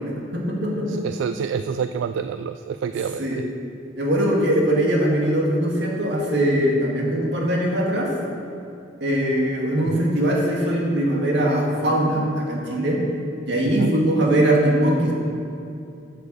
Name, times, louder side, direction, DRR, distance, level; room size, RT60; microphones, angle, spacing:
voice 1, 0.0-1.0 3.2-3.4 4.0-8.1 9.0-13.0 13.4-15.1, right 1 dB, 65° right, -2 dB, 2.0 m, -21 dB
voice 2, 0.9-3.4 4.3-4.4 9.9-10.0 12.7-12.8 13.8-13.9, right 6 dB, 85° right, 10 dB, 0.3 m, -28 dB
9.0 x 6.7 x 6.7 m, 2.6 s
head